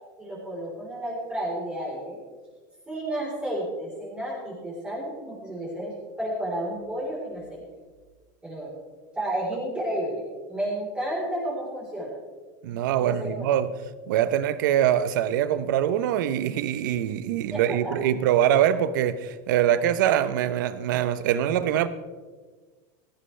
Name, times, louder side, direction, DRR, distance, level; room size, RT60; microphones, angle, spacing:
voice 1, 0.2-2.2 2.9-7.6 8.4-8.7 9.1-10.2 10.5-12.1 13.0-13.3 17.5-17.6 17.8-17.9, right 1 dB, 10° right, 4.1 m, -31 dB
voice 2, 12.6-13.7 14.1-21.9, right 10 dB, 85° right, 0.9 m, -23 dB
17.0 x 14.0 x 3.4 m
supercardioid pair, 150°, 10 cm